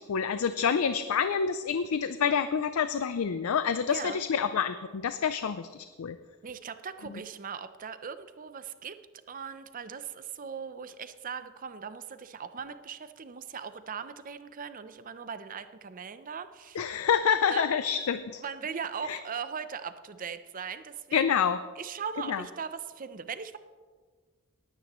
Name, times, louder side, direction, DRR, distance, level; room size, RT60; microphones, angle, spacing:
voice 1, 0.0-6.2 16.8-18.4 19.1-19.2 21.1-21.6 22.3-22.4, left 7 dB, 80° left, 12 dB, 0.4 m, -27 dB
voice 2, 3.9-4.2 6.4-9.0 9.3-16.8 17.5-17.7 18.4-21.2 21.8-23.6, right 6 dB, 40° right, 11 dB, 0.6 m, -39 dB
19.5 x 9.4 x 3.0 m, 1.5 s
head